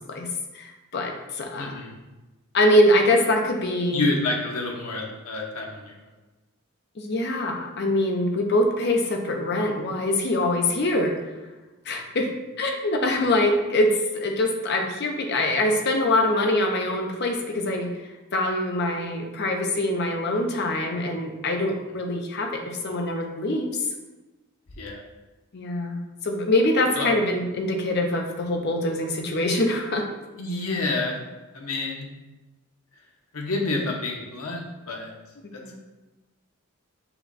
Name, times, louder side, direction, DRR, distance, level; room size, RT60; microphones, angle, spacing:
voice 1, 0.5-1.7 2.5-4.1 7.0-11.2 11.9-12.3 12.6-17.9 18.3-23.7 25.5-30.1 35.6-35.7, left 1 dB, 50° left, 3 dB, 0.6 m, -24 dB
voice 2, 1.5-1.9 3.9-6.0 13.0-13.1 24.8-25.0 27.0-27.1 30.4-31.2 31.5-32.1 33.3-34.6 34.9-35.1 35.5-35.6, left 2 dB, 85° left, 0 dB, 0.9 m, -28 dB
5.7 x 2.2 x 3.9 m, 1.1 s
head